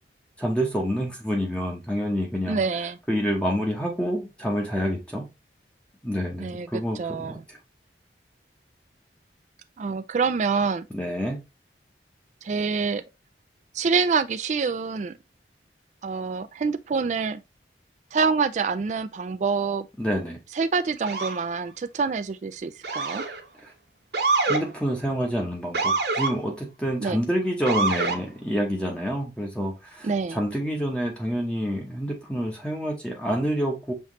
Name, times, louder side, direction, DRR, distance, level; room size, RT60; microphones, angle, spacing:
voice 1, 0.4-2.6 3.1-5.3 6.0-7.4 10.9-11.4 20.0-20.4 24.5-33.9, equal, 5° left, 0.9 m, -27 dB
voice 2, 2.5-3.0 6.4-7.4 9.8-10.9 12.4-13.0 13.7-15.2 16.0-17.4 18.1-19.9 20.5-23.2 27.0-27.2 30.0-30.4, right 5 dB, 40° right, 0.3 m, -26 dB
Motor vehicle (road) / Siren, 21.1-21.4 22.8-23.4 24.1-24.6 25.7-26.3 27.7-28.2, right 3 dB, 65° right, 1.0 m, -25 dB
5.7 x 3.1 x 3.0 m
head